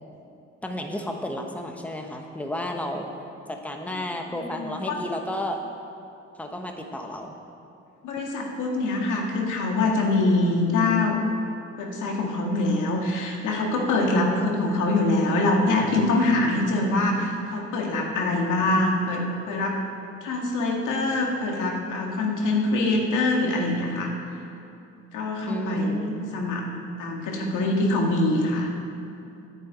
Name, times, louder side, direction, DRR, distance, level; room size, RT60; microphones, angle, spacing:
voice 1, 0.6-3.1 3.5-5.6 6.4-7.3 14.1-14.5 25.5-26.2, equal, 5° left, 3 dB, 1.2 m, -31 dB
voice 2, 4.6-5.0 8.0-11.2 11.8-19.8 20.2-24.1 25.1-26.6 27.0-28.7, left 2 dB, 85° left, 0 dB, 2.0 m, -24 dB
9.9 x 7.2 x 9.2 m, 2.7 s
cardioid pair, 90°, 30 cm